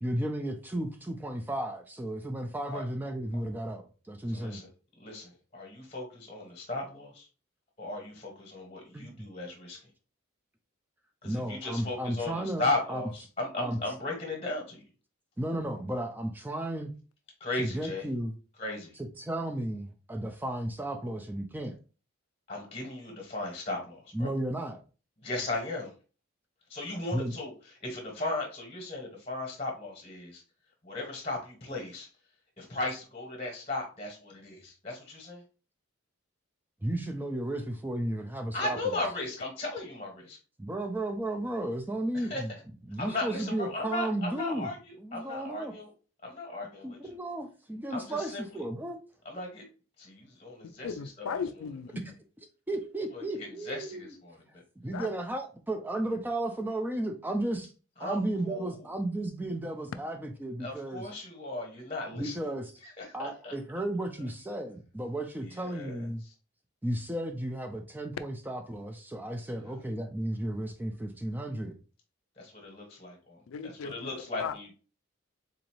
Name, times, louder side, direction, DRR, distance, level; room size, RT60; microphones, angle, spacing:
voice 1, 0.0-4.6 8.9-9.3 11.2-13.0 13.6-13.8 15.4-16.9 17.6-18.3 19.0-21.8 24.1-24.8 27.1-27.3 36.8-38.8 40.6-42.5 42.9-44.7 45.0-45.7 46.8-49.0 52.7-54.1 54.8-57.7 58.0-61.1 62.1-62.7 63.1-66.2 66.8-71.8, right 1 dB, 10° right, 0.3 m, -34 dB
voice 2, 4.3-4.7 5.0-7.3 7.8-9.9 11.2-14.8 17.4-18.1 18.6-18.9 22.5-24.3 25.2-25.9 26.7-27.5 27.8-30.4 30.8-32.1 32.6-35.4 38.5-40.4 42.1-42.4 43.0-45.9 46.2-47.2 47.9-48.6 49.2-49.6 50.0-50.9 53.1-54.6 58.0-58.8 60.6-62.4 62.8-63.5 65.4-66.1 72.4-74.7, left 2 dB, 25° left, 1.0 m, -36 dB
voice 3, 50.8-52.1 54.9-55.1 73.5-74.1 74.4-74.5, left 6 dB, 75° left, 0.3 m, -36 dB
3.9 x 2.6 x 2.9 m
head